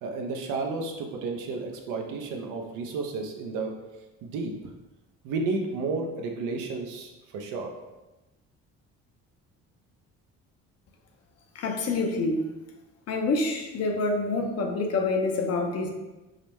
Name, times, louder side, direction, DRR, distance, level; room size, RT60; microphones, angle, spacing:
voice 1, 0.0-3.8 4.2-4.5 5.2-7.7, right 3 dB, 75° right, 2 dB, 0.7 m, -32 dB
voice 2, 11.5-12.5 13.1-15.9, left 3 dB, 50° left, 2 dB, 0.7 m, -27 dB
5.0 x 2.1 x 3.0 m, 1.1 s
supercardioid pair, 80°, 32 cm